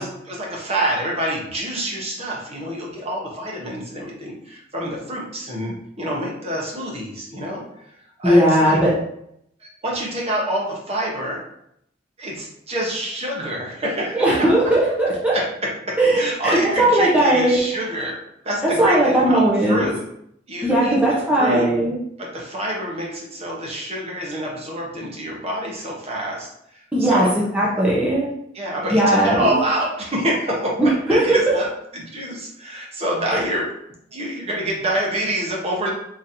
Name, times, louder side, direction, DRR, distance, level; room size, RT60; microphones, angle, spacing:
voice 1, 0.0-8.8 9.6-11.4 12.2-14.3 15.3-18.2 18.4-20.0 20.5-21.7 22.2-27.3 28.5-31.7 31.9-33.7 34.1-35.9, right 1 dB, 35° right, -3 dB, 0.9 m, -27 dB
voice 2, 8.2-9.0 14.1-15.4 16.0-17.7 18.6-19.8 20.6-21.9 26.9-28.3 28.9-29.5 30.8-31.4 33.3-33.4, right 1 dB, 5° right, -7 dB, 0.7 m, -18 dB
4.0 x 2.9 x 2.7 m, 0.74 s
head